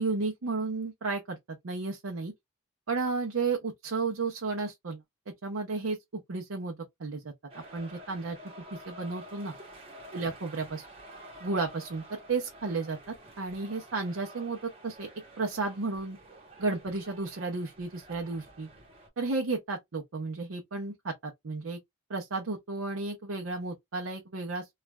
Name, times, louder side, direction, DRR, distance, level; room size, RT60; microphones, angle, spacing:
voice 1, 0.0-1.4 1.6-2.3 2.9-5.0 5.4-6.0 6.3-8.4 8.7-9.5 10.1-10.9 11.4-13.0 13.4-15.1 15.4-16.2 16.6-18.7 19.2-21.8 22.1-24.7, right 3 dB, 80° right, 0.7 m, -33 dB
sound 1, 7.5-19.1, right 1 dB, 30° right, 1.0 m, -50 dB
3.1 x 2.4 x 2.2 m
head